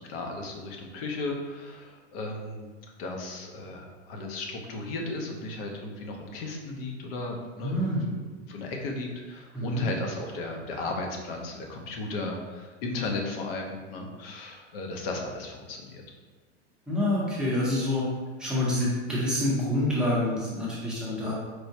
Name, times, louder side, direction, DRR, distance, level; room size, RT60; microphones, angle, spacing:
voice 1, 0.0-2.7 3.0-16.0, left 2 dB, 50° left, 2 dB, 0.7 m, -35 dB
voice 2, 7.6-8.0 9.5-9.8 16.9-18.1 18.4-21.3, left 1 dB, ahead, -8 dB, 0.7 m, -27 dB
4.6 x 2.1 x 2.7 m, 1.4 s
hypercardioid pair, 135°, 37 cm